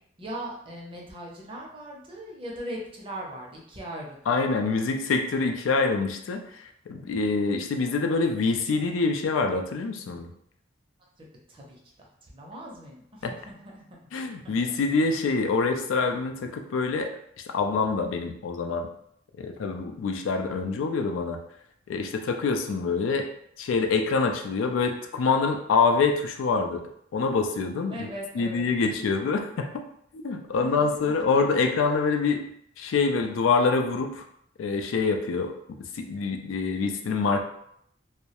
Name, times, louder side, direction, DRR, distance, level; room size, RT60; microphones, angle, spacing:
voice 1, 0.2-4.4 11.2-11.8 12.2-13.8 27.9-28.9 30.6-31.0, equal, 25° right, -2 dB, 0.5 m, -39 dB
voice 2, 4.3-10.3 13.2-13.3 14.1-17.1 17.5-18.9 19.4-21.4 21.9-23.3 23.6-26.8 27.1-28.1 28.4-29.8 30.1-32.4 32.8-34.2 34.6-35.5 35.9-37.4, left 4 dB, 85° left, 5 dB, 0.3 m, -25 dB
2.2 x 2.0 x 2.8 m, 0.70 s
head